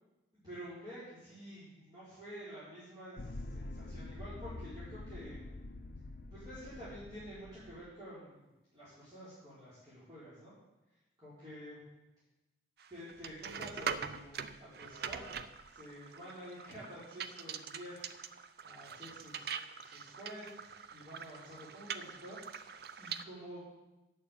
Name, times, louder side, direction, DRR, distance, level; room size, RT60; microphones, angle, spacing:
voice 1, 0.3-5.4 6.3-10.5 11.2-11.8 12.9-15.2 15.7-18.1 18.6-19.5 19.8-22.7 23.0-23.7, equal, 20° right, -13 dB, 4.1 m, -49 dB
sound 1, 3.2-7.8, left 2 dB, 50° left, 0.5 m, -46 dB
sound 2, 12.8-23.2, right 6 dB, 55° right, 0.5 m, -43 dB
9.2 x 6.9 x 8.4 m, 1.0 s
head